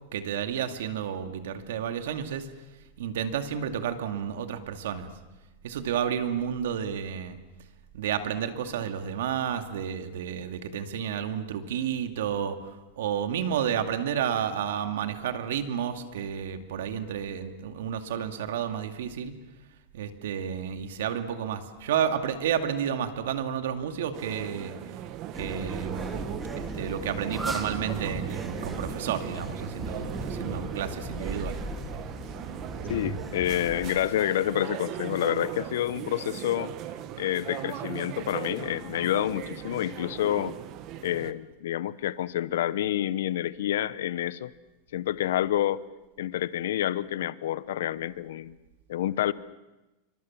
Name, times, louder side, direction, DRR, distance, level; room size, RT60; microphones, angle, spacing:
voice 1, 0.1-2.5 3.0-5.1 5.6-7.4 7.9-19.4 19.9-24.7 25.3-31.6, right 8 dB, 85° right, 7 dB, 2.4 m, -31 dB
sound 1, 24.1-41.3, right 11 dB, 35° right, 1.3 m, -39 dB
sound 2, 25.3-33.9, right 2 dB, 10° right, 2.2 m, -36 dB
voice 2, 32.9-36.7 37.2-40.6 41.0-44.5 44.9-45.8 46.2-48.5 48.9-49.3, left 12 dB, 80° left, 17 dB, 0.9 m, -28 dB
27.5 x 24.5 x 7.4 m, 1.0 s
supercardioid pair, 170°, 0 cm